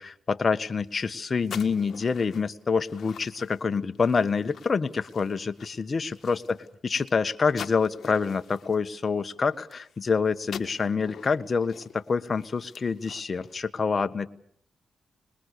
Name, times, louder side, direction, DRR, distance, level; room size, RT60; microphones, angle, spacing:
voice 1, 0.0-6.6 6.8-14.3, left 5 dB, 45° left, 11 dB, 1.5 m, -27 dB
sound 1, 0.7-10.1 10.4-13.6, left 7 dB, 65° left, 1.7 m, -46 dB
25.5 x 21.5 x 6.8 m, 0.66 s
supercardioid pair, 50°, 0 cm